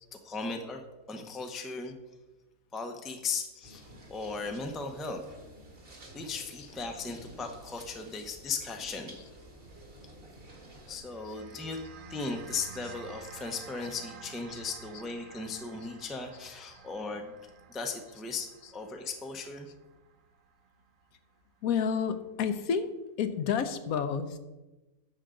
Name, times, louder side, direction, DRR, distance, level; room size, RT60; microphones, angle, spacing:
voice 1, 0.1-0.8 1.1-1.9 2.7-5.2 6.1-9.1 10.9-11.8 12.1-17.3 17.7-19.7, left 4 dB, ahead, 4 dB, 0.4 m, -37 dB
sound 1, 3.6-11.0, right 1 dB, 40° right, 1.7 m, -51 dB
sound 2, 10.8-21.3, right 6 dB, 60° right, 0.5 m, -51 dB
voice 2, 21.6-22.9 23.2-24.4, left 7 dB, 75° left, 10 dB, 1.1 m, -29 dB
10.5 x 6.6 x 3.8 m, 1.1 s
omnidirectional pair, 1.5 m